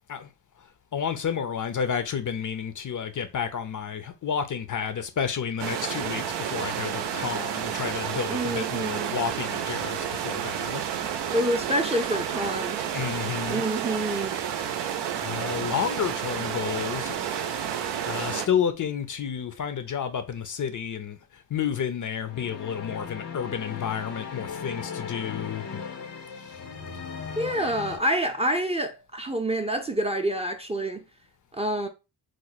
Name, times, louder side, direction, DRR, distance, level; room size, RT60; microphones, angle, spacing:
voice 1, 0.6-10.8 12.9-13.6 14.7-17.7 18.0-25.8 26.4-26.6, left 7 dB, 45° left, 0.6 m, -31 dB
sound 1, 5.6-18.5, right 9 dB, 75° right, 0.6 m, -30 dB
voice 2, 8.3-9.2 11.3-12.8 13.5-14.4 27.4-31.0 31.5-31.9, right 1 dB, 15° right, 0.5 m, -27 dB
sound 2, 22.2-28.0, left 6 dB, 90° left, 1.0 m, -37 dB
3.1 x 2.1 x 4.0 m
cardioid pair, 65°, 41 cm